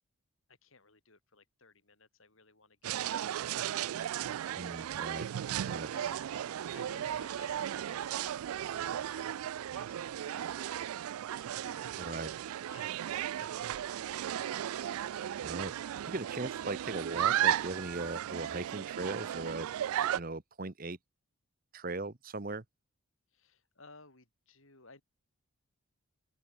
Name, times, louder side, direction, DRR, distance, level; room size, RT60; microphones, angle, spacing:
voice 1, 0.5-4.3 5.9-9.3 9.7-12.0 12.7-13.1 13.4-15.5 23.3-25.0, left 4 dB, 65° left, 5.2 m, -59 dB
sound 1, 2.8-20.2, right 11 dB, 80° right, 0.3 m, -35 dB
voice 2, 4.5-5.3 5.7-5.9 12.0-12.3 15.4-15.7 16.1-19.7 20.1-21.0 21.7-22.6, right 2 dB, 40° right, 1.1 m, -38 dB
open air
head